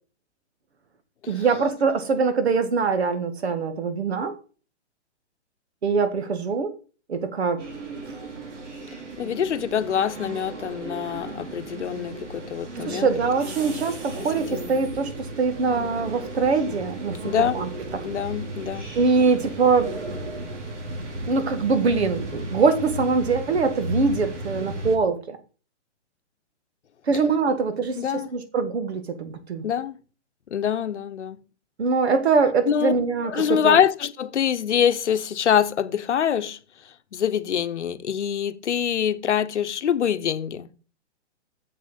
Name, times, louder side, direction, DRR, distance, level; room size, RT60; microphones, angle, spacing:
voice 1, 1.3-4.3 5.8-6.7 7.1-7.6 12.8-17.7 18.9-19.9 21.3-25.4 27.1-29.6 31.8-33.8, right 4 dB, 65° right, 1.8 m, -23 dB
sound 1, 7.6-25.0, right 1 dB, 90° right, 3.1 m, -35 dB
voice 2, 9.2-13.1 14.2-14.3 14.5-14.7 17.2-17.6 18.0-18.9 27.9-28.3 29.6-30.0 30.5-31.4 32.6-32.9 33.2-36.6 37.1-40.7, left 8 dB, 80° left, 1.0 m, -24 dB
7.7 x 6.4 x 4.0 m
hypercardioid pair, 175°, 35 cm